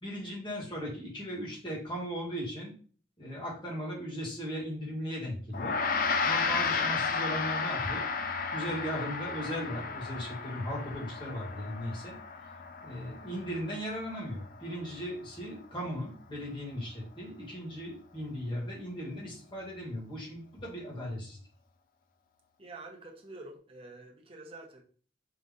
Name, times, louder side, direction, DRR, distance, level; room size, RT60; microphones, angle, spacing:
voice 1, 0.0-2.7 3.2-5.8 6.2-8.0 8.5-12.2 12.8-21.4, equal, 25° left, -4 dB, 1.7 m, -37 dB
Gong, 5.5-15.1, left 5 dB, 50° left, 0.4 m, -33 dB
voice 2, 6.5-7.0 12.9-13.4 22.6-24.8, right 2 dB, 30° right, 0 dB, 0.8 m, -48 dB
3.8 x 2.8 x 3.7 m, 0.42 s
head